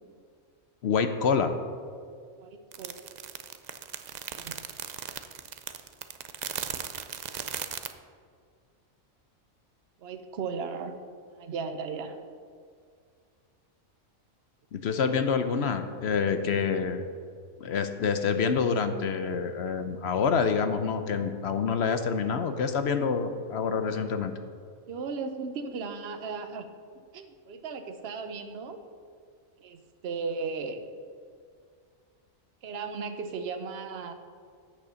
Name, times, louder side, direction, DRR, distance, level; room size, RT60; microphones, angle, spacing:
voice 1, 0.8-1.6 14.7-17.0 17.6-24.3, left 6 dB, 60° left, 8 dB, 0.8 m, -27 dB
voice 2, 2.4-2.9 4.4-4.5 10.0-10.9 11.3-12.2 17.7-17.8 24.9-26.7 27.1-28.8 29.6-30.8 32.6-34.1, right 5 dB, 55° right, 8 dB, 1.0 m, -36 dB
sound 1, 2.7-7.9, right 8 dB, 80° right, 0.3 m, -37 dB
8.4 x 6.6 x 6.9 m, 2.1 s
omnidirectional pair, 1.4 m